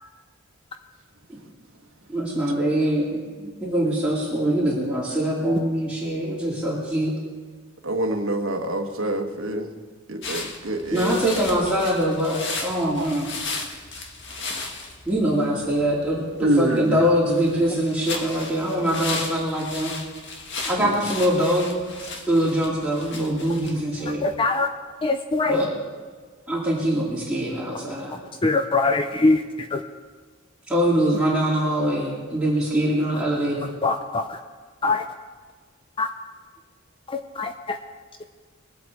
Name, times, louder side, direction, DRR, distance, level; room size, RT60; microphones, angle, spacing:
voice 1, 2.1-7.1 10.9-13.3 15.1-19.9 20.6-21.8 22.3-24.2 25.5-25.7 26.5-28.2 30.7-33.7, equal, 5° right, -8 dB, 2.6 m, -23 dB
voice 2, 7.8-9.8 10.1-11.1 12.8-13.2 14.4-14.5 16.4-17.0 20.8-21.0, right 1 dB, 70° right, 4 dB, 1.3 m, -26 dB
sound 1, 10.2-24.4, left 3 dB, 60° left, 1.7 m, -35 dB
voice 3, 24.1-24.7 25.0-25.6 27.7-27.8 28.1-29.8 33.8-34.4 34.8-35.1 36.0-36.1 37.1-37.8, left 3 dB, 25° left, 7 dB, 0.5 m, -23 dB
22.0 x 8.1 x 4.6 m, 1.5 s
head